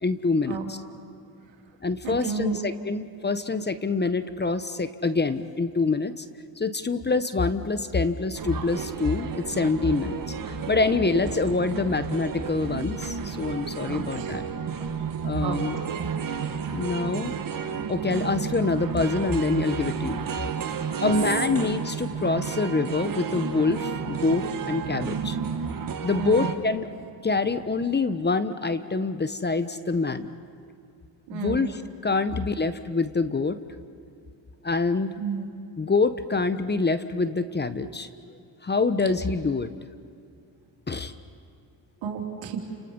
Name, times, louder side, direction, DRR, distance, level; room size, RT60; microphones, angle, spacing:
voice 1, 0.0-0.8 1.8-6.3 6.6-10.2 10.5-14.5 15.2-15.8 16.7-17.4 17.9-20.2 21.0-25.4 26.0-26.9 27.2-30.3 31.3-33.6 34.6-35.1 35.8-38.1 38.6-39.7 40.9-41.1, left 3 dB, 25° left, 11 dB, 1.2 m, -26 dB
voice 2, 2.0-2.5 11.1-11.3 13.8-14.4 15.0-15.1 15.4-15.6 15.9-16.1 20.9-21.1 26.2-26.5 31.3-31.7 35.2-35.5 42.0-42.6, right 7 dB, 80° right, 1 dB, 3.4 m, -31 dB
sound 1, 8.4-26.6, right 7 dB, 50° right, 1.9 m, -32 dB
30.0 x 28.0 x 5.5 m, 2.2 s
supercardioid pair, 70°, 44 cm